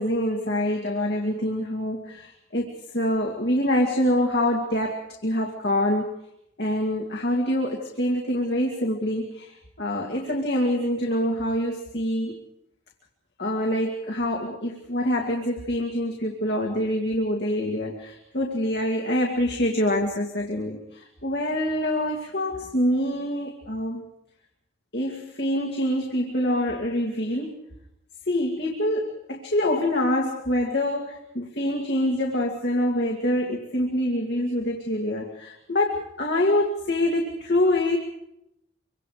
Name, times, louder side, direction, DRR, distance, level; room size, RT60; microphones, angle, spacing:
voice 1, 0.0-6.1 6.6-12.4 13.4-24.0 24.9-27.6 28.3-38.0, left 1 dB, 55° left, 0 dB, 2.4 m, -25 dB
25.5 x 24.0 x 5.0 m, 0.80 s
head